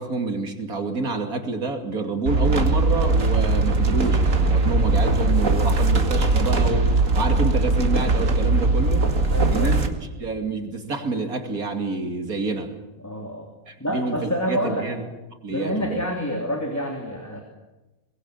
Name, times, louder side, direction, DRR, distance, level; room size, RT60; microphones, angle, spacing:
voice 1, 0.0-9.1 9.5-9.8 10.2-12.7 13.7-15.0 15.4-16.0, right 3 dB, 85° right, 5 dB, 3.1 m, -28 dB
sound 1, 2.3-9.9, right 3 dB, 65° right, 2.4 m, -20 dB
voice 2, 9.3-9.8 13.0-13.5 13.8-14.9 15.5-17.4, equal, 10° left, 1 dB, 3.1 m, -28 dB
23.0 x 21.0 x 8.5 m, 1.1 s
omnidirectional pair, 1.5 m